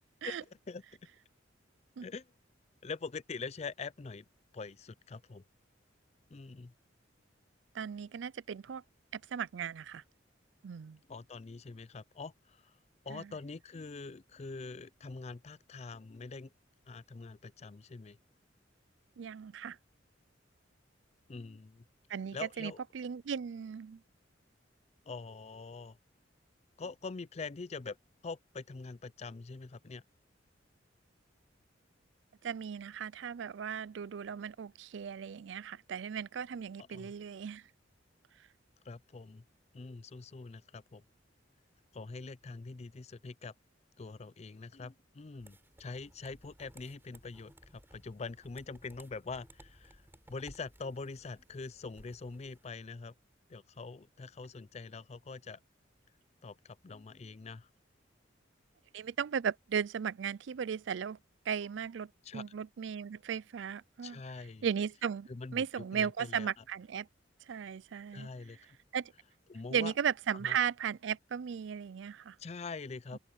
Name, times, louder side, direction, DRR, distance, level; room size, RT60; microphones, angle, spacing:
voice 1, 0.2-0.8 2.0-2.3 2.8-4.3 4.5-5.4 6.3-6.7 11.1-12.8 13.0-16.5 16.9-18.2 21.3-21.9 22.3-22.8 25.1-26.0 26.8-28.0 28.2-30.0 36.8-37.1 38.8-39.4 39.7-41.0 41.9-43.5 44.0-50.0 50.3-53.1 53.5-55.6 56.4-57.7 62.2-62.4 64.0-64.6 65.3-66.5 68.1-68.6 69.5-69.9 70.4-70.6 72.4-73.2, left 4 dB, 35° left, 0.4 m, -44 dB
voice 2, 7.7-8.8 9.1-10.0 10.6-11.0 13.1-13.3 19.2-19.8 22.1-24.0 32.4-37.6 58.9-61.2 61.5-64.2 64.6-67.1 67.5-68.3 68.9-69.1 69.7-72.4, right 7 dB, 70° right, 0.4 m, -36 dB
sound 1, 45.4-52.7, right 1 dB, 10° right, 7.1 m, -59 dB
open air
head